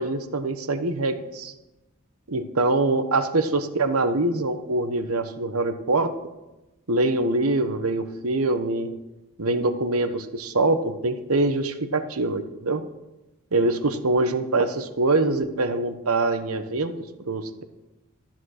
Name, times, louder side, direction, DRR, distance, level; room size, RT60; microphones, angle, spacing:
voice 1, 0.0-1.5 2.3-6.1 6.9-9.0 9.4-12.8 13.5-16.9 17.3-17.6, right 2 dB, 80° right, 9 dB, 1.2 m, -24 dB
14.0 x 10.5 x 6.6 m, 1.0 s
head